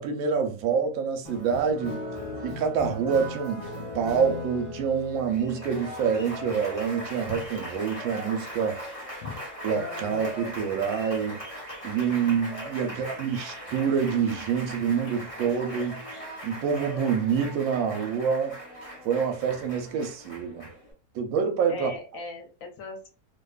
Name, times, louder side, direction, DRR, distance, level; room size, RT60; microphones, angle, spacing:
voice 1, 0.0-2.0 2.4-3.6 3.9-8.8 9.6-11.4 11.8-16.0 16.4-18.6 19.0-20.7 21.1-21.9, right 6 dB, 70° right, 0.9 m, -27 dB
Applause, 1.2-20.9, left 1 dB, 25° left, 0.8 m, -39 dB
voice 2, 12.8-13.4 21.7-23.1, left 3 dB, 65° left, 0.9 m, -40 dB
2.5 x 2.3 x 2.2 m
omnidirectional pair, 1.7 m